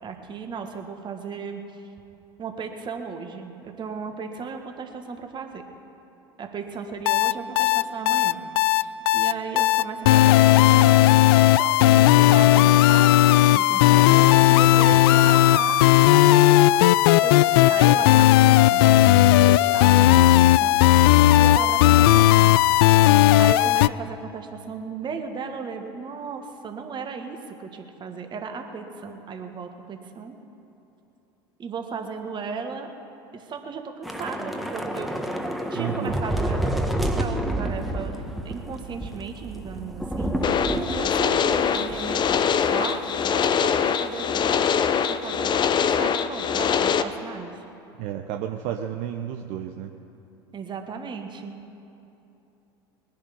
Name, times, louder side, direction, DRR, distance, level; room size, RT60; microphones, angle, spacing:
voice 1, 0.0-1.8 2.4-5.6 6.4-8.4 8.7-11.1 11.6-15.8 16.1-16.7 17.2-19.1 19.4-20.8 21.4-22.6 23.4-30.4 31.6-32.9 33.3-35.1 35.7-40.3 40.9-47.5 50.5-51.6, right 5 dB, 35° right, 5 dB, 1.8 m, -35 dB
sound 1, 7.1-23.9, left 15 dB, 70° left, 0.4 m, -16 dB
Thunder / Rain, 34.0-42.6 42.9-43.1 43.4-43.7, right 1 dB, ahead, 1.4 m, -29 dB
voice 2, 35.7-36.2 36.9-37.1 48.0-49.9, right 10 dB, 60° right, 5 dB, 0.8 m, -32 dB
sound 2, 40.4-47.0, left 7 dB, 35° left, 0.8 m, -23 dB
21.0 x 10.5 x 5.4 m, 2.9 s
hypercardioid pair, 75°, 13 cm